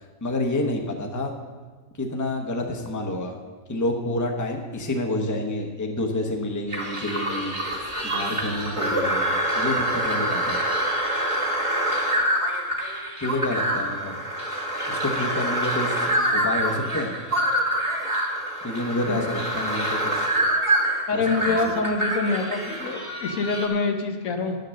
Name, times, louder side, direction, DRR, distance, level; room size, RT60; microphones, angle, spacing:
voice 1, 0.2-1.3 2.0-3.4 3.7-7.6 8.1-10.6 13.2-14.2 14.9-17.1 18.6-20.3 21.1-21.6, left 1 dB, 15° left, 2 dB, 0.8 m, -28 dB
sound 1, 6.7-23.7, right 1 dB, 25° right, 1.6 m, -26 dB
voice 2, 21.1-24.6, left 3 dB, 80° left, 5 dB, 1.4 m, -25 dB
10.5 x 6.6 x 6.4 m, 1.4 s
omnidirectional pair, 1.4 m